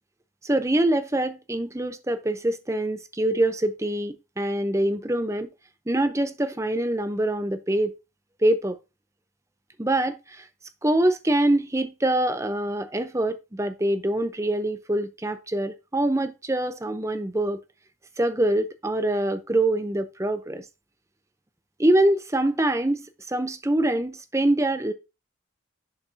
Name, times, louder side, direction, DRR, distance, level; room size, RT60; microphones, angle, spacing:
voice 1, 0.4-5.5 5.9-7.9 8.4-8.8 9.8-10.4 10.8-17.6 18.2-20.6 21.8-24.9, right 1 dB, 15° right, 0.7 m, -24 dB
10.5 x 5.2 x 2.8 m
head